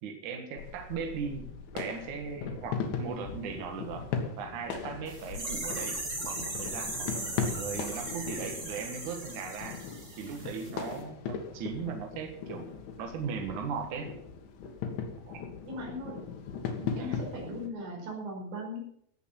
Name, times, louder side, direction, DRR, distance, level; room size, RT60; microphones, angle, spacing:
voice 1, 0.0-1.4 1.7-4.1 4.4-9.8 10.2-12.7 13.0-14.1 15.3-15.4 17.0-17.2, right 6 dB, 60° right, 4 dB, 2.1 m, -38 dB
sound 1, 0.6-17.7, left 6 dB, 70° left, 4.1 m, -38 dB
sound 2, 5.0-10.7 10.9-11.0, right 2 dB, 25° right, 1.8 m, -38 dB
voice 2, 15.6-16.2 16.8-18.8, equal, 80° right, -1 dB, 7.8 m, -39 dB
16.0 x 8.4 x 7.4 m, 0.69 s
omnidirectional pair, 5.7 m